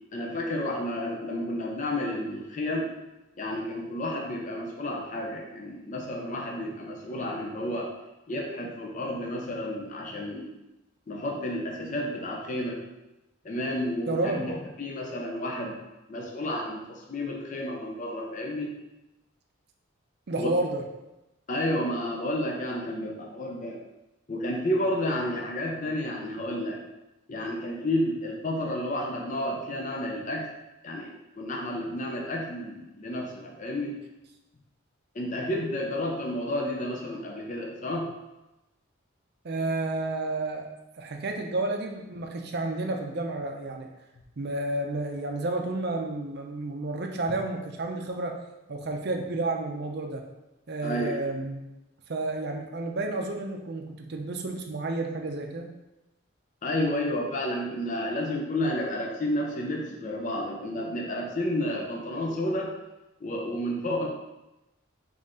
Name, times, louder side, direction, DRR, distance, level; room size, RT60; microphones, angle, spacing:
voice 1, 0.1-2.9 3.4-7.9 8.3-10.5 11.1-12.8 13.4-15.8 16.1-18.7 20.4-20.5 21.5-23.8 24.3-26.8 27.3-30.5 30.8-33.9 35.2-38.1 47.3-47.4 50.8-51.2 56.6-62.7 63.2-64.1, left 1 dB, 40° left, 0 dB, 0.5 m, -31 dB
voice 2, 14.1-14.4 20.3-20.8 39.4-40.7 41.0-43.9 44.4-48.4 48.7-50.2 50.7-51.6 52.1-55.7, right 2 dB, 50° right, 2 dB, 0.6 m, -31 dB
4.0 x 3.2 x 3.7 m, 0.98 s
head